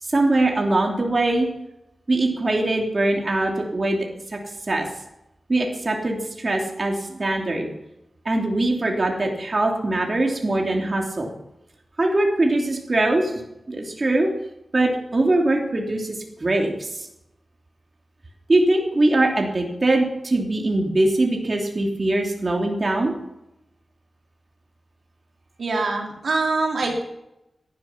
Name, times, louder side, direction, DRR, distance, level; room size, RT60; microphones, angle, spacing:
voice 1, 0.0-1.5 2.1-4.4 4.7-4.9 5.5-7.7 8.2-11.3 12.0-14.3 14.7-17.1 18.5-23.1, right 2 dB, 40° right, 1 dB, 2.8 m, -22 dB
voice 2, 25.6-27.0, right 3 dB, 75° right, 1 dB, 3.4 m, -24 dB
17.5 x 12.0 x 5.8 m, 0.87 s
wide cardioid pair, 90°, 0 cm